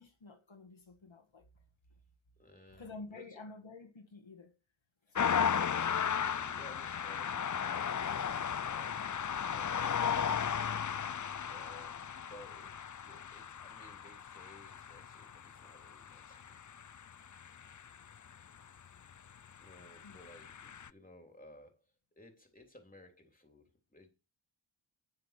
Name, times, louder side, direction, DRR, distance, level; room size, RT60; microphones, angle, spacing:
voice 1, 0.0-1.5 2.7-4.5 5.1-5.5 20.0-20.2, left 3 dB, 70° left, 1.9 m, -50 dB
voice 2, 2.4-3.4 6.3-10.7 11.5-16.6 19.6-24.1, left 1 dB, 15° left, 3.3 m, -58 dB
sound 1, 5.1-18.3 19.3-20.9, left 7 dB, 40° left, 0.5 m, -35 dB
9.7 x 7.9 x 6.6 m
wide cardioid pair, 55°, 47 cm